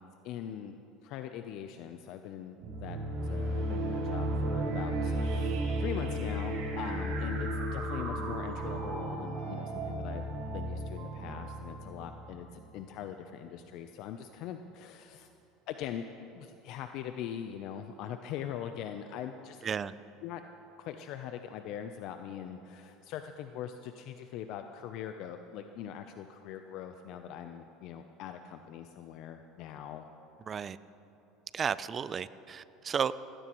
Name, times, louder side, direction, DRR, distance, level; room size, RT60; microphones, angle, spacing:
voice 1, 0.2-3.0 3.2-10.3 10.5-15.3 15.7-19.6 20.2-20.4 20.8-30.0, left 9 dB, 65° left, 7 dB, 0.6 m, -42 dB
sound 1, 2.6-12.8, right 1 dB, 75° right, 3.0 m, -34 dB
voice 2, 19.6-19.9 30.5-30.8 31.5-33.1, right 7 dB, 35° right, 16 dB, 0.4 m, -33 dB
18.5 x 16.5 x 3.1 m, 2.8 s
supercardioid pair, 105°, 0 cm